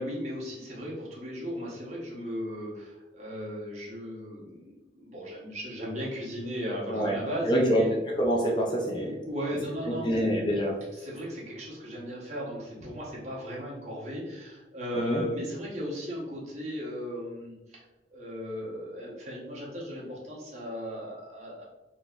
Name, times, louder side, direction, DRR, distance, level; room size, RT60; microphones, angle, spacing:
voice 1, 0.0-7.9 8.8-10.2 10.9-17.8 18.1-21.6, equal, 40° right, -5 dB, 1.0 m, -36 dB
voice 2, 7.5-7.8 8.1-9.2 9.8-10.7 14.9-15.2, equal, 25° left, -1 dB, 0.4 m, -26 dB
3.8 x 2.8 x 2.4 m, 1.0 s
head